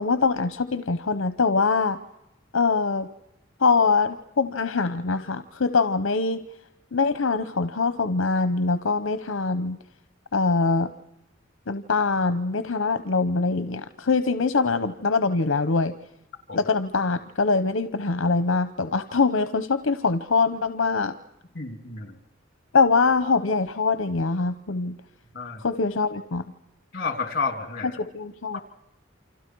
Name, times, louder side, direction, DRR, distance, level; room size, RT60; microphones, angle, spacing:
voice 1, 0.0-2.0 2.5-3.1 3.6-6.4 6.9-9.8 10.3-10.9 11.7-15.9 16.5-21.1 22.7-24.9 25.6-26.4 28.0-28.6, left 4 dB, 80° left, 11 dB, 0.8 m, -23 dB
voice 2, 21.5-22.1 25.3-25.6 26.9-28.0 28.5-28.6, left 4 dB, 50° left, 5 dB, 3.1 m, -30 dB
29.0 x 26.0 x 4.7 m, 0.89 s
head